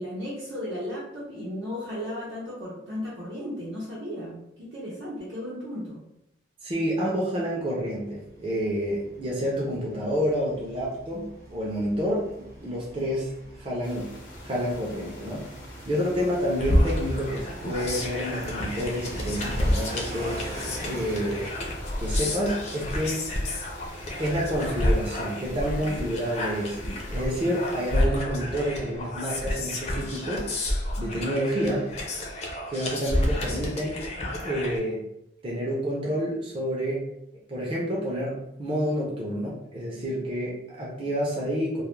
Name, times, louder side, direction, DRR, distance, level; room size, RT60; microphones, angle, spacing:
voice 1, 0.0-6.0, left 1 dB, 85° right, -9 dB, 0.7 m, -35 dB
voice 2, 6.6-13.3 13.6-14.1 14.4-15.4 15.9-20.4 20.8-21.5 22.0-23.2 24.2-26.8 27.1-31.9 32.7-34.0 34.4-35.0 35.4-37.0 37.5-41.8, equal, 30° right, -5 dB, 0.4 m, -29 dB
sound 1, 8.1-24.2, right 1 dB, 45° right, 1.0 m, -43 dB
sound 2, 13.8-28.1, left 1 dB, 85° left, 0.6 m, -44 dB
sound 3, 16.6-34.8, left 1 dB, 35° left, 0.4 m, -29 dB
2.3 x 2.0 x 3.0 m, 0.83 s
head